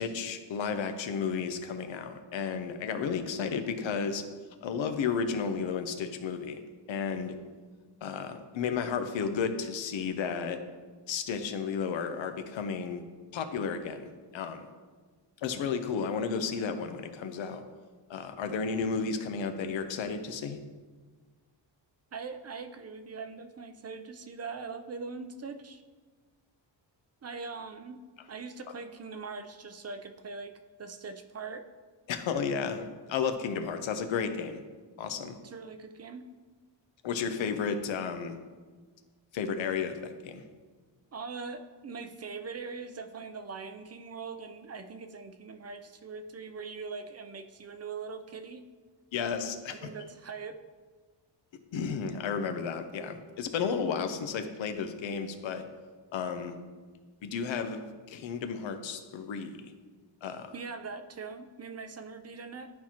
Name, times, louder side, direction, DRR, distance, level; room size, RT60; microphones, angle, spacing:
voice 1, 0.0-4.2 4.6-6.6 6.9-7.3 8.0-10.6 11.1-13.0 13.3-14.7 15.4-17.6 18.1-20.6 32.1-34.6 35.0-35.4 37.0-38.3 39.3-40.4 49.1-49.9 51.7-55.6 56.1-56.5 57.2-57.8 58.1-59.7 60.2-60.5, left 6 dB, 85° left, 8 dB, 0.8 m, -33 dB
voice 2, 22.1-25.8 27.2-28.0 28.3-31.7 35.4-36.2 41.1-48.6 49.7-50.6 60.5-62.7, right 4 dB, 35° right, 8 dB, 0.4 m, -41 dB
11.5 x 4.4 x 2.9 m, 1.4 s
wide cardioid pair, 115°, 45 cm